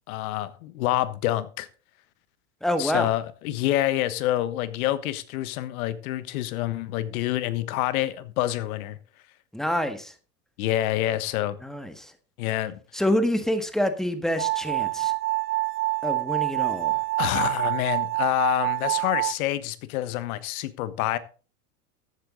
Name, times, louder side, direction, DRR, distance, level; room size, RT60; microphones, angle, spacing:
voice 1, 0.1-1.7 2.8-9.0 10.6-11.6 12.4-12.8 17.2-21.2, left 14 dB, 65° left, 1.4 m, -27 dB
voice 2, 2.6-3.1 9.5-10.1 11.6-12.1 12.9-15.1 16.0-17.0, equal, ahead, 1.6 m, -27 dB
sound 1, 14.4-19.3, right 20 dB, 25° right, 0.5 m, -26 dB
14.0 x 8.4 x 3.8 m
hypercardioid pair, 100°, 45 cm